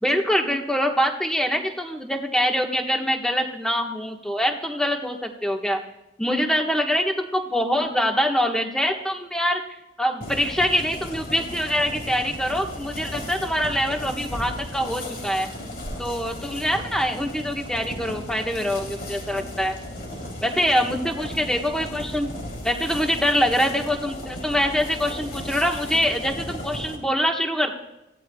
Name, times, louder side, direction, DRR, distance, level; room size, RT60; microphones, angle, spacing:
voice 1, 0.0-5.8 6.2-9.6 10.0-15.5 16.0-19.8 20.4-22.3 22.6-27.7, equal, 5° left, 2 dB, 1.3 m, -24 dB
sound 1, 10.2-27.0, left 1 dB, 50° left, 3.4 m, -35 dB
24.0 x 16.0 x 2.3 m, 0.93 s
head